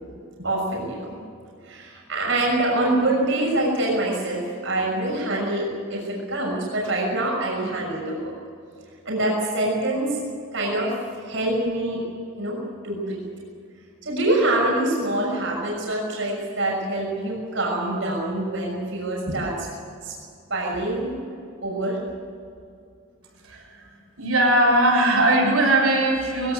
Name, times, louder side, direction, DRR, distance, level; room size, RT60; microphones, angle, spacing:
voice 1, 0.4-1.1 1.7-8.3 9.0-10.2 10.5-10.9 11.2-12.0 12.4-12.6 12.8-13.2 14.0-19.7 20.0-20.1 20.5-21.1 21.6-22.0, right 1 dB, 60° right, -3 dB, 6.3 m, -25 dB
voice 2, 23.4-23.8 24.2-26.5, right 1 dB, 90° right, -1 dB, 7.2 m, -19 dB
21.5 x 18.5 x 8.1 m, 2.4 s
head